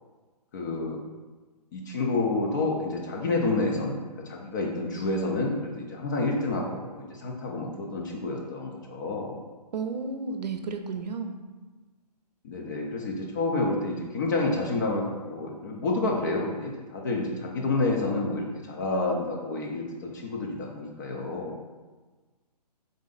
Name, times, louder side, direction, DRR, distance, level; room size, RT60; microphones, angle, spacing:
voice 1, 0.5-1.0 1.7-4.0 4.3-9.4 12.4-15.0 15.3-21.5, left 2 dB, 30° left, -1 dB, 0.5 m, -29 dB
voice 2, 9.7-11.3, right 4 dB, 75° right, 6 dB, 0.6 m, -32 dB
3.8 x 3.1 x 3.8 m, 1.3 s
hypercardioid pair, 145°, 21 cm